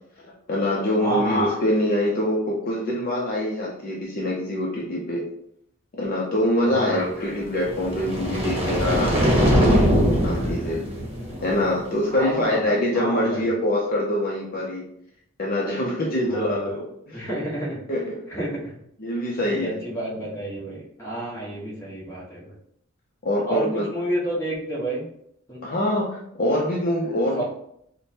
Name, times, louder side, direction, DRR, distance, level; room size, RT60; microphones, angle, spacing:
voice 1, 0.2-5.2 5.9-10.8 11.4-14.8 15.4-17.3 17.9-18.2 19.0-19.8 23.2-23.9 25.6-27.4, left 1 dB, 45° left, -3 dB, 0.6 m, -24 dB
voice 2, 1.0-1.4 6.6-7.1 12.1-12.6 12.9-13.4 16.3-16.6 17.1-17.8 18.3-18.8 19.4-22.5 23.5-25.0 25.5-25.6 27.4-27.5, right 1 dB, 15° left, -6 dB, 1.3 m, -30 dB
sound 1, 7.6-11.8, equal, 30° right, 1.1 m, -22 dB
4.8 x 2.2 x 2.9 m, 0.73 s
head